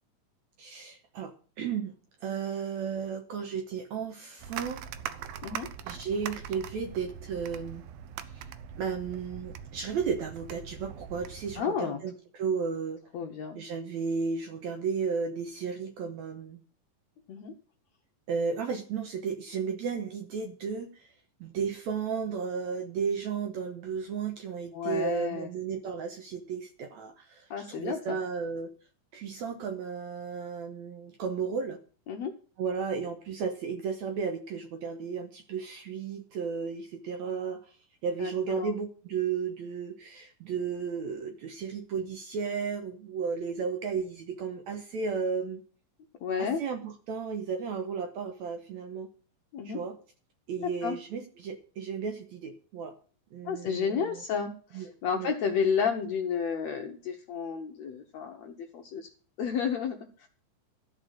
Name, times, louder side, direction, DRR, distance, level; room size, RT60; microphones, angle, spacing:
voice 1, 0.6-1.3 1.6-1.9 2.2-4.8 5.9-7.8 8.3-8.4 8.8-13.0 13.6-16.6 18.3-21.1 21.4-28.7 29.1-31.8 32.6-37.8 38.0-45.6 46.4-49.1 49.6-50.0 50.5-52.9 53.3-54.2 54.7-54.9 55.1-55.3, right 6 dB, 70° right, 6 dB, 1.8 m, -34 dB
sound 1, 4.4-11.6, right 9 dB, 90° right, 2.6 m, -42 dB
voice 2, 11.6-12.0 13.1-13.6 17.3-17.5 24.7-25.5 27.5-28.2 32.1-32.3 38.2-38.7 46.2-46.6 49.5-49.8 50.6-51.0 53.4-59.1 59.4-60.3, left 6 dB, 75° left, 4 dB, 1.6 m, -31 dB
13.0 x 5.2 x 8.8 m, 0.42 s
omnidirectional pair, 4.1 m